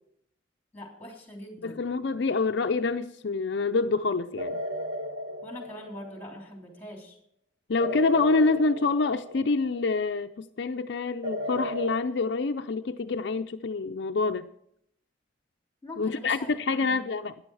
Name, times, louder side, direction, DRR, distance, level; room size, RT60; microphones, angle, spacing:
voice 1, 0.7-1.8 5.4-7.2 15.8-17.0, left 1 dB, 10° left, 3.2 m, -43 dB
voice 2, 1.6-4.6 7.7-14.5 16.0-17.3, left 3 dB, 65° left, 0.5 m, -27 dB
sound 1, 4.4-6.4 7.8-9.9 11.2-12.0, equal, 75° right, 1.2 m, -35 dB
14.0 x 9.9 x 4.7 m
head